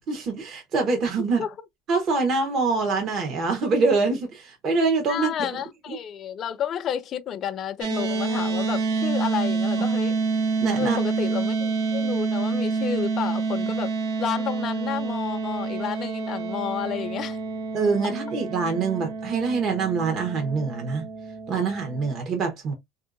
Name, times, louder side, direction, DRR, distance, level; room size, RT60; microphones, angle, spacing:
voice 1, 0.0-1.4 1.9-6.0 9.7-9.8 10.6-11.0 13.6-13.7 17.7-21.1 21.5-22.7, right 4 dB, 40° right, 1.0 m, -25 dB
voice 2, 5.1-10.1 10.8-13.9 14.2-17.4, left 9 dB, 35° left, 0.4 m, -31 dB
sound 1, 7.8-22.2, right 4 dB, 85° right, 0.9 m, -27 dB
3.4 x 2.7 x 2.5 m
cardioid pair, 150°, 0 cm